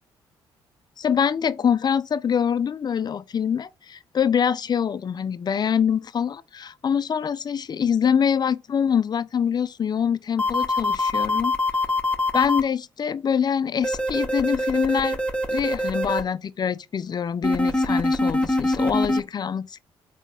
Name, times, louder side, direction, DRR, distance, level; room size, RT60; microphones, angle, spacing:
voice 1, 1.0-11.5 12.3-15.2 15.5-19.8, left 7 dB, 35° left, 0.3 m, -24 dB
sound 1, 10.4-12.6 13.8-16.2 17.4-19.2, left 1 dB, 10° left, 0.9 m, -23 dB
3.8 x 2.7 x 3.6 m
hypercardioid pair, 50°, 12 cm